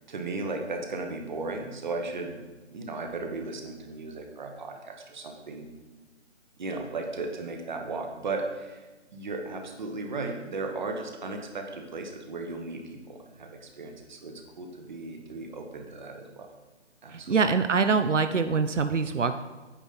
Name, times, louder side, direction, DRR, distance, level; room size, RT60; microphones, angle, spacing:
voice 1, 0.0-2.4 2.7-5.7 6.6-8.8 9.1-16.5 17.0-17.5, right 3 dB, 40° right, 4 dB, 1.1 m, -36 dB
voice 2, 17.1-19.4, right 5 dB, 90° right, 9 dB, 0.6 m, -24 dB
9.0 x 6.2 x 4.1 m, 1.2 s
figure-of-eight pair, 150°, 35 cm